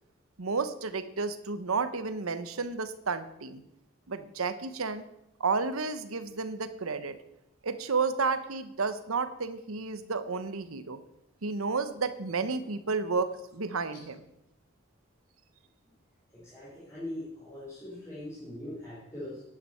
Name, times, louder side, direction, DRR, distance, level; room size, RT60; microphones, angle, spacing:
voice 1, 0.4-3.6 4.1-5.0 5.4-7.2 7.6-11.0 11.4-14.2, right 4 dB, 90° right, 11 dB, 0.9 m, -31 dB
voice 2, 16.3-19.4, left 1 dB, 15° left, -9 dB, 3.9 m, -41 dB
11.0 x 10.0 x 5.6 m, 0.83 s
head